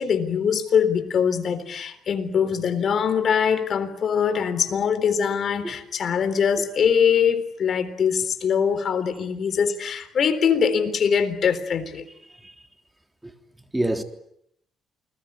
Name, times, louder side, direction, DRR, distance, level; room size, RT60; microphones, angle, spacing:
voice 1, 0.0-12.0, left 7 dB, 55° left, 3.9 m, -22 dB
voice 2, 4.3-4.6 5.6-5.8 6.6-6.7 12.2-12.7 13.2-13.3 13.7-14.0, right 1 dB, 10° right, 3.5 m, -29 dB
29.0 x 21.5 x 9.6 m
cardioid pair, 90°, 0 cm